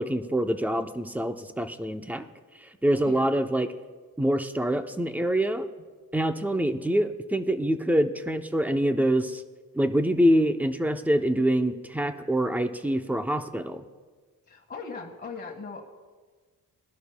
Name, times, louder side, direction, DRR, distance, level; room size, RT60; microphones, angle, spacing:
voice 1, 0.0-2.2 2.6-3.7 4.2-5.7 6.1-9.4 9.7-13.8, right 1 dB, 5° right, 7 dB, 0.6 m, -25 dB
voice 2, 14.5-15.8, left 4 dB, 30° left, -1 dB, 1.5 m, -39 dB
21.0 x 11.5 x 2.2 m, 1.4 s
wide cardioid pair, 120°, 35 cm